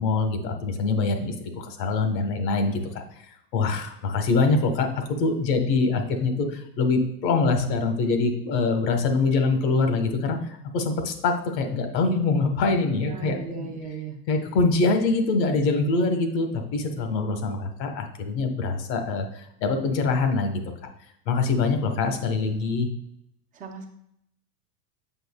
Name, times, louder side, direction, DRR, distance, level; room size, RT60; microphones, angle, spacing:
voice 1, 0.0-2.8 3.5-13.7 14.3-20.6 21.3-22.9, left 3 dB, 80° left, 6 dB, 1.3 m, -24 dB
voice 2, 13.1-14.2 23.5-23.9, right 5 dB, 15° right, 2 dB, 0.6 m, -36 dB
7.9 x 5.7 x 2.3 m, 0.75 s
supercardioid pair, 145°, 50 cm